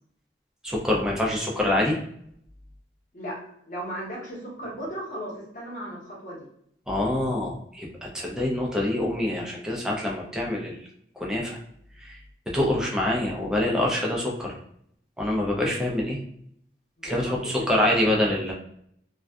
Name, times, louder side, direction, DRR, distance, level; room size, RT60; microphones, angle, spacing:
voice 1, 0.6-2.0 6.9-10.8 11.2-11.6 12.0-12.2 12.5-14.5 15.2-16.2 17.0-18.5, left 1 dB, 5° right, -2 dB, 0.4 m, -25 dB
voice 2, 3.7-6.4 17.1-17.7, equal, 45° left, -4 dB, 0.9 m, -36 dB
2.5 x 2.3 x 2.2 m, 0.70 s
head